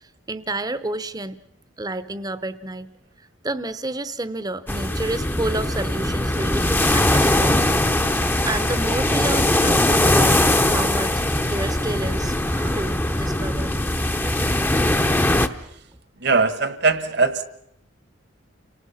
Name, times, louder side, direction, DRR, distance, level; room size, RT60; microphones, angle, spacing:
voice 1, 0.0-1.4 1.8-2.9 3.4-7.6 8.5-13.8, right 2 dB, 20° right, 15 dB, 0.8 m, -30 dB
sound 1, 4.7-15.5, left 1 dB, 10° left, 0.8 m, -20 dB
sound 2, 5.4-15.1, right 1 dB, 90° right, 2.4 m, -46 dB
voice 2, 16.2-17.5, right 4 dB, 60° right, 13 dB, 1.4 m, -20 dB
29.5 x 19.0 x 5.6 m, 0.77 s
head